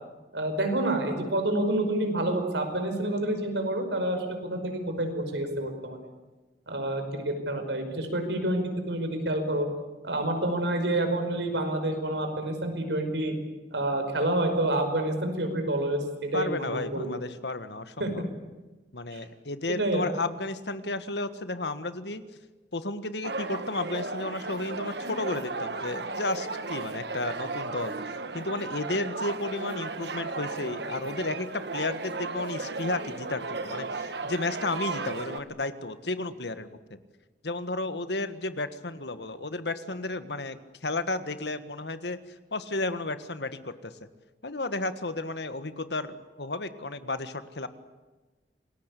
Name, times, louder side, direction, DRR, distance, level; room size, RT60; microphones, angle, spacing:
voice 1, 0.3-4.3 4.5-6.0 6.7-9.7 10.0-13.3 13.7-17.1 18.0-18.1 19.1-19.2 19.7-20.0, right 1 dB, 90° right, 6 dB, 5.3 m, -28 dB
voice 2, 16.3-18.2 18.9-22.2 22.7-27.9 28.3-36.8 37.4-42.2 42.5-43.9 44.4-47.7, left 2 dB, 75° left, 11 dB, 1.6 m, -33 dB
sound 1, 23.2-35.4, right 3 dB, 70° right, 1.5 m, -35 dB
27.5 x 20.0 x 8.4 m, 1.2 s
head